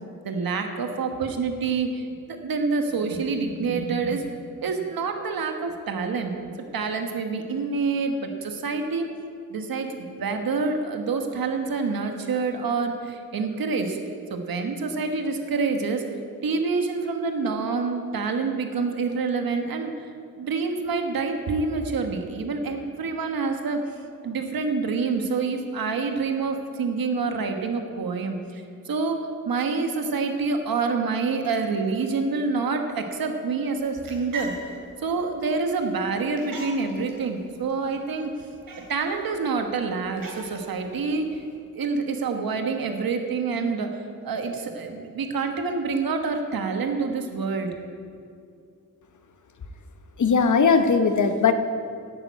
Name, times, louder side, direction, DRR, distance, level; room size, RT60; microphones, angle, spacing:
voice 1, 0.2-4.3 4.6-6.4 6.7-9.1 9.5-14.0 14.3-16.0 16.4-19.9 20.4-23.8 24.2-34.5 35.0-38.3 38.8-41.4 41.7-47.7, right 4 dB, 85° right, 5 dB, 1.4 m, -27 dB
sound 1, 33.7-41.6, right 3 dB, 70° right, 2.9 m, -43 dB
voice 2, 50.2-51.5, left 5 dB, 60° left, 8 dB, 1.0 m, -19 dB
11.0 x 9.0 x 8.3 m, 2.4 s
wide cardioid pair, 100°, 34 cm